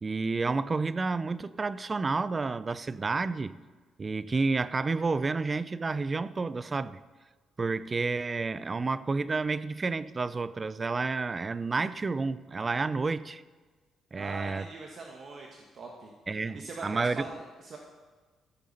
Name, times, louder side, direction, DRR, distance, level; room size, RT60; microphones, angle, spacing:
voice 1, 0.0-3.5 4.0-7.0 7.6-13.4 14.1-14.7 16.3-17.3, right 4 dB, 30° right, 0.4 m, -30 dB
voice 2, 14.1-16.1 16.5-16.9 17.2-17.8, right 3 dB, 55° right, 1.4 m, -42 dB
15.0 x 8.4 x 4.2 m
cardioid pair, 90°, 0 cm